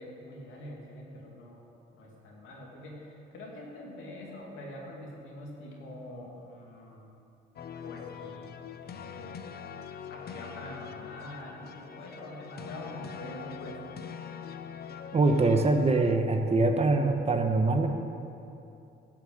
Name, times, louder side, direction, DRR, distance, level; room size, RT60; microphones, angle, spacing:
voice 1, 0.0-1.7 1.9-7.1 7.8-8.5 8.8-9.5 10.1-13.8 15.2-15.6, left 1 dB, 85° left, -2 dB, 2.6 m, -45 dB
sound 1, 7.6-16.2, left 7 dB, 50° left, 0.7 m, -43 dB
voice 2, 15.1-17.9, right 3 dB, 30° right, 5 dB, 1.2 m, -24 dB
12.0 x 7.0 x 7.9 m, 2.7 s
cardioid pair, 90°, 20 cm